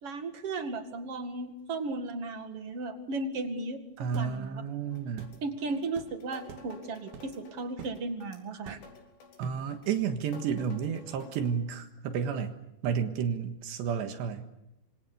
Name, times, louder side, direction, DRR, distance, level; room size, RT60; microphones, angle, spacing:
voice 1, 0.0-3.8 4.1-4.6 5.4-8.8, right 3 dB, 45° right, 8 dB, 2.3 m, -35 dB
voice 2, 4.0-5.3 9.4-12.5 12.8-14.5, right 7 dB, 80° right, 8 dB, 3.8 m, -31 dB
sound 1, 4.1-4.3 5.2-5.4 6.0-6.1 6.5-6.7 7.1-7.4 7.8-8.0 8.7-9.0 9.4-9.7, right 8 dB, 65° right, 3.7 m, -45 dB
sound 2, 4.9-11.5, left 4 dB, 70° left, 6.3 m, -53 dB
26.5 x 25.5 x 6.8 m, 0.88 s
omnidirectional pair, 5.0 m